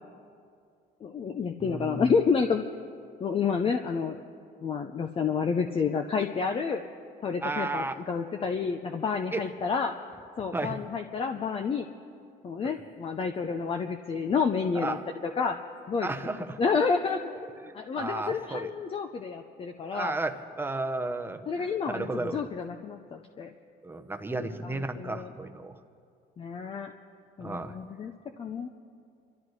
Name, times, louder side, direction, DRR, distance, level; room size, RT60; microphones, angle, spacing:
voice 1, 1.0-2.6 3.2-4.2 4.6-6.8 7.2-9.9 10.4-11.9 12.4-15.0 15.2-15.6 15.9-16.1 16.6-17.2 17.7-20.1 21.5-23.5 24.6-25.3 26.4-26.9 27.4-28.1 28.4-28.7, left 5 dB, 35° left, 5 dB, 0.6 m, -29 dB
voice 2, 1.6-2.1 7.4-8.0 9.3-9.4 10.5-10.8 12.6-12.7 14.7-15.0 16.0-16.6 17.4-18.7 19.9-22.4 23.8-25.8 27.4-27.8, right 2 dB, 15° right, 6 dB, 0.8 m, -33 dB
26.5 x 13.0 x 3.2 m, 2.4 s
cardioid pair, 110°, 17 cm